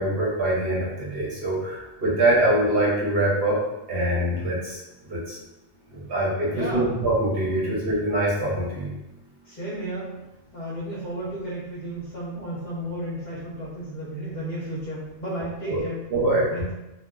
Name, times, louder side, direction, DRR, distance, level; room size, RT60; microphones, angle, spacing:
voice 1, 0.0-3.6 3.9-4.8 5.1-5.4 5.9-8.9 15.7-15.8 16.1-16.5, right 1 dB, 60° right, -5 dB, 0.9 m, -24 dB
voice 2, 6.5-6.9 7.6-7.7 9.5-10.2 10.5-16.0 16.5-16.7, right 1 dB, 45° left, -8 dB, 0.9 m, -33 dB
2.3 x 2.1 x 3.5 m, 0.99 s
omnidirectional pair, 1.2 m